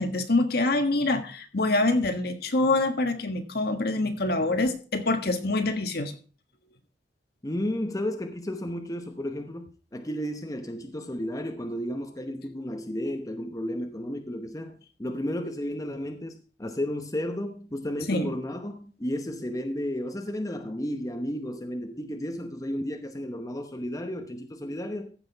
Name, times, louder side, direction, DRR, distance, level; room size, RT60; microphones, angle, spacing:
voice 1, 0.0-6.1 18.1-18.3, left 2 dB, 60° left, 1.5 m, -25 dB
voice 2, 7.4-25.1, equal, 20° left, 0.9 m, -33 dB
14.5 x 6.1 x 4.6 m
head